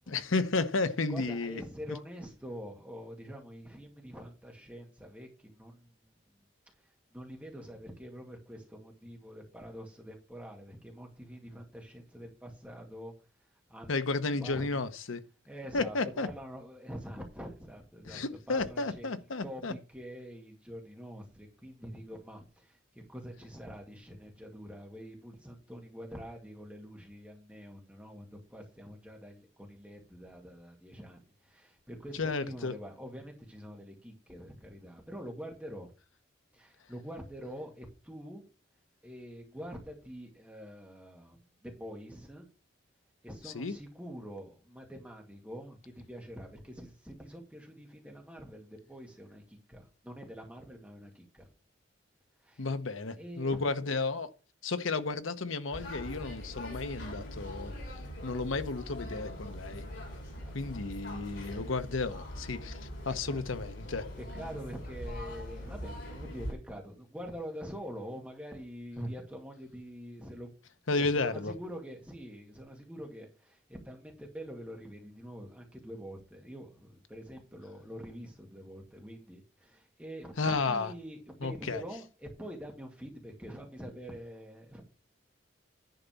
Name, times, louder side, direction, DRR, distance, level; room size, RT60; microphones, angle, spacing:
voice 1, 0.1-1.6 13.9-15.2 15.7-16.3 18.1-19.7 32.2-32.7 43.5-43.7 52.6-54.3 54.6-57.7 58.2-59.8 60.5-64.1 70.9-71.5 80.4-80.9 81.4-81.8, left 3 dB, 85° left, 0.9 m, -32 dB
voice 2, 0.8-6.5 6.8-14.0 14.3-14.8 15.5-35.9 36.5-38.4 39.0-42.5 43.2-51.5 52.4-53.6 59.0-59.3 60.3-60.7 63.2-63.5 64.2-70.5 71.0-84.8, equal, 5° right, 2.1 m, -45 dB
sound 1, 55.7-66.5, left 1 dB, 70° left, 5.0 m, -42 dB
10.5 x 4.0 x 6.9 m
head